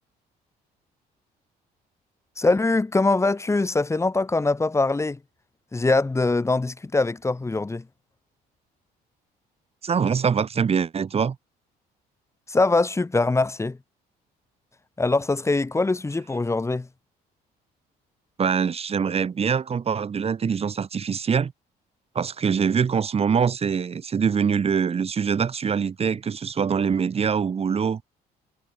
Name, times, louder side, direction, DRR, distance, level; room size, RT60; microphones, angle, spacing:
voice 1, 2.4-5.2 5.7-7.8 12.5-13.8 15.0-16.9, left 3 dB, 15° left, 4.3 m, -23 dB
voice 2, 9.8-11.4 18.4-21.5 22.1-28.0, right 6 dB, 35° right, 4.7 m, -24 dB
cardioid pair, 110°, 17 cm